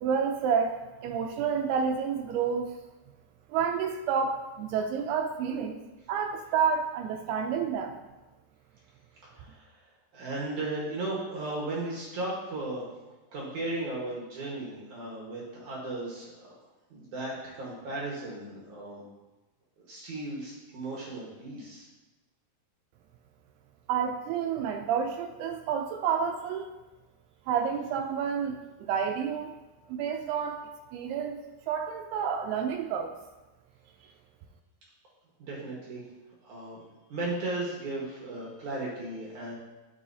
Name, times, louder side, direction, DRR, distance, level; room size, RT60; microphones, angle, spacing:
voice 1, 0.0-2.7 3.5-5.8 6.1-8.0 23.9-26.7 27.5-29.5 29.9-31.4 31.7-33.1, right 7 dB, 80° right, 5 dB, 2.4 m, -29 dB
voice 2, 9.2-9.9 10.1-12.9 13.3-16.6 16.9-19.0 19.8-21.9 35.4-36.0 36.4-36.8 37.1-39.5, right 2 dB, 60° right, -4 dB, 2.2 m, -36 dB
13.0 x 6.2 x 2.7 m, 1.1 s
omnidirectional pair, 4.9 m